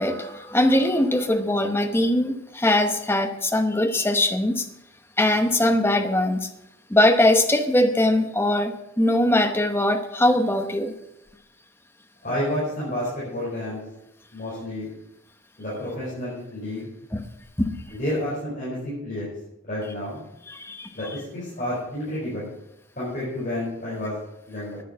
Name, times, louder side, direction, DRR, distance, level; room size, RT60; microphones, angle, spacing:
voice 1, 0.0-4.7 5.2-6.5 6.9-10.9 17.1-17.2 17.6-17.7 20.5-20.9, left 1 dB, 10° left, 6 dB, 0.9 m, -21 dB
voice 2, 12.2-13.8 14.3-14.9 15.6-16.9 17.9-19.3 19.7-20.2 20.9-22.5 23.0-24.2 24.5-24.8, left 1 dB, 40° left, -8 dB, 4.8 m, -30 dB
10.5 x 9.2 x 7.3 m, 0.86 s
head